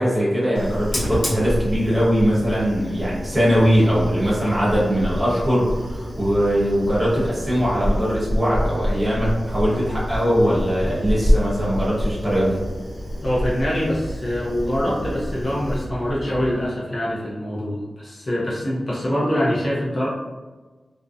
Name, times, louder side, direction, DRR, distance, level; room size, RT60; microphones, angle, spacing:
voice 1, 0.0-12.6, equal, 20° right, -8 dB, 1.0 m, -21 dB
Fire, 0.5-16.7, equal, 55° left, 0.8 m, -28 dB
voice 2, 13.2-20.1, equal, 35° left, -7 dB, 0.5 m, -24 dB
2.6 x 2.1 x 2.4 m, 1.3 s
wide cardioid pair, 145°, 0 cm